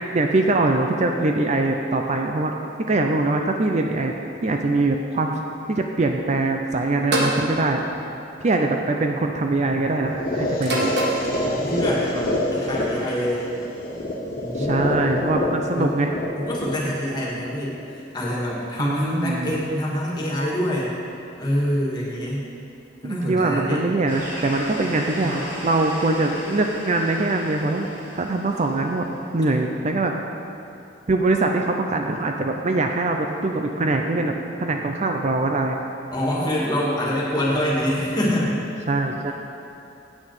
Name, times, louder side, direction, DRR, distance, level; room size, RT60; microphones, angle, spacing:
voice 1, 0.1-2.6 2.9-4.1 4.4-5.3 5.7-7.8 8.4-10.9 14.5-16.1 18.8-19.6 23.0-27.9 28.2-29.1 29.3-30.1 31.1-35.8 38.9-39.3, right 2 dB, 40° right, 3 dB, 0.5 m, -22 dB
sound 1, 7.1-7.4 8.6-9.0 10.6-11.3, right 1 dB, 60° right, 1.3 m, -24 dB
sound 2, 10.0-18.0, left 1 dB, 50° left, 1.5 m, -27 dB
voice 2, 11.4-13.4 14.4-15.0 15.6-15.9 16.4-20.9 21.4-22.5 23.0-23.9 25.1-25.5 36.1-38.6, equal, 20° left, -5 dB, 1.9 m, -26 dB
sound 3, 24.1-29.0, equal, 10° right, 2.5 m, -36 dB
8.6 x 6.2 x 7.4 m, 2.7 s
head